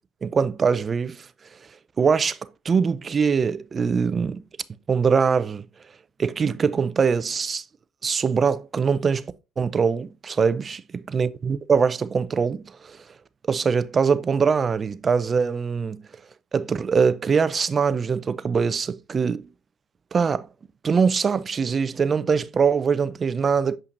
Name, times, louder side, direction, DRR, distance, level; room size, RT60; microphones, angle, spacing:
voice 1, 0.2-1.3 2.0-2.4 2.6-4.4 4.9-5.6 6.2-7.6 8.0-10.8 11.1-13.0 13.5-16.0 16.5-19.5 20.1-20.5 20.8-23.8, right 5 dB, 30° right, 0.4 m, -22 dB
6.5 x 5.6 x 2.6 m
cardioid pair, 105°, 0 cm